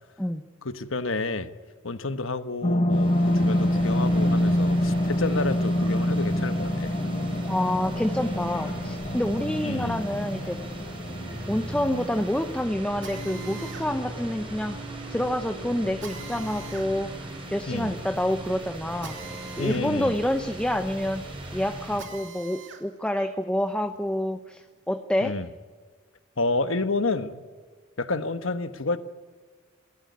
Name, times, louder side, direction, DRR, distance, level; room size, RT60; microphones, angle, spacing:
voice 1, 0.6-1.5 1.8-6.9 9.6-10.1 17.7-18.0 19.6-20.2 25.2-25.5 26.4-27.4 28.0-29.0, left 3 dB, 80° left, 1.2 m, -29 dB
sound 1, 2.6-13.4 13.9-14.0, left 1 dB, 35° left, 1.1 m, -26 dB
sound 2, 2.9-22.0, right 1 dB, 25° right, 6.1 m, -38 dB
voice 2, 7.5-10.6 11.5-14.8 15.1-17.1 17.5-19.2 19.6-21.2 21.5-25.3, left 1 dB, 5° left, 0.8 m, -28 dB
Drill, 13.0-22.9 23.3-24.9, right 4 dB, 65° right, 2.7 m, -46 dB
28.5 x 13.5 x 9.6 m
head